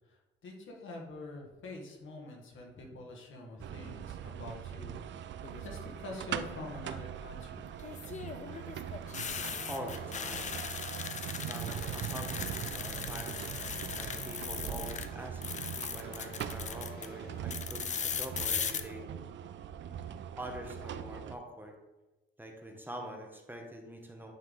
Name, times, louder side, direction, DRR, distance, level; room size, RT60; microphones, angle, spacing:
voice 1, 0.1-7.7, left 2 dB, 75° left, 0 dB, 1.5 m, -46 dB
sound 1, 3.6-21.4, right 9 dB, 65° right, 0.4 m, -41 dB
sound 2, 5.4-5.9 7.8-15.1 15.4-17.1 17.5-18.8, left 7 dB, 35° left, 0.5 m, -38 dB
sound 3, 9.0-10.6 11.5-15.3 15.9-17.4, left 2 dB, 50° left, 2.2 m, -54 dB
voice 2, 9.7-10.6 11.4-13.4 14.0-19.1 20.4-21.7 22.4-24.3, equal, 10° right, 2 dB, 0.9 m, -45 dB
9.5 x 3.8 x 3.8 m, 1.1 s
cardioid pair, 135°, 20 cm